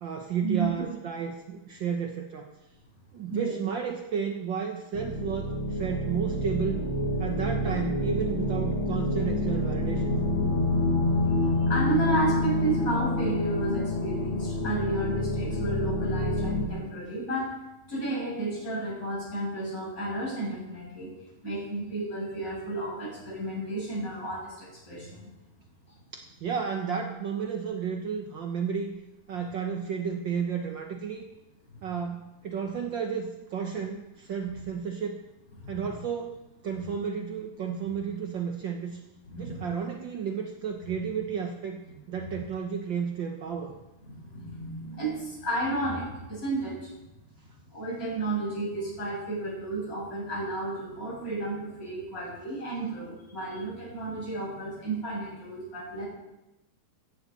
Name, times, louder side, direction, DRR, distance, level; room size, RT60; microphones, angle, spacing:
voice 1, 0.0-2.5 3.1-6.8 7.2-10.2 26.1-28.9 29.3-31.2 31.8-35.2 35.7-36.4 36.6-39.0 39.4-41.8 42.1-43.7, right 6 dB, 75° right, 3 dB, 1.0 m, -32 dB
sound 1, 4.9-16.7, left 1 dB, 60° left, 3.4 m, -27 dB
voice 2, 11.5-17.5 17.9-21.1 21.4-25.3 31.7-31.8 35.6-35.9 39.2-39.7 42.2-42.3 44.0-47.0 47.7-56.0, right 2 dB, 25° left, -5 dB, 7.5 m, -32 dB
17.0 x 14.5 x 4.1 m, 0.96 s
omnidirectional pair, 3.5 m